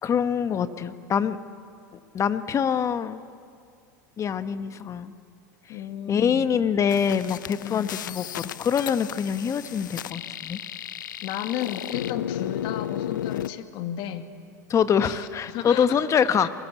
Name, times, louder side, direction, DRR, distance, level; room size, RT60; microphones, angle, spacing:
voice 1, 0.0-1.4 2.1-3.3 4.2-5.1 5.7-5.8 6.1-10.6 14.7-16.5, left 7 dB, 30° left, 11 dB, 1.4 m, -24 dB
voice 2, 5.7-6.5 7.6-7.9 11.2-14.3 15.0-16.1 16.4-16.5, left 11 dB, 55° left, 7 dB, 2.2 m, -33 dB
sound 1, 6.9-13.5, left 11 dB, 80° left, 0.7 m, -34 dB
30.0 x 22.5 x 8.5 m, 2.4 s
hypercardioid pair, 95°, 10 cm